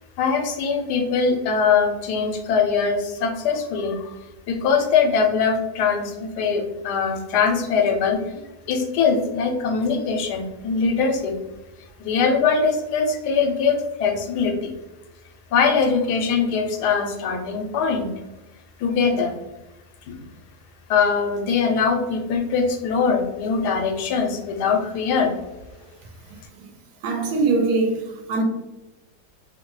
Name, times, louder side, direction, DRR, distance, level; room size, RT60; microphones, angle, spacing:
voice 1, 0.2-4.2 4.5-8.4 8.7-11.3 12.0-14.7 15.5-18.1 18.8-19.3 20.1-20.2 20.9-25.3, left 5 dB, 90° left, 1.2 m, -22 dB
voice 2, 27.0-28.4, right 3 dB, 80° right, 1.2 m, -22 dB
2.9 x 2.1 x 3.0 m
omnidirectional pair, 1.7 m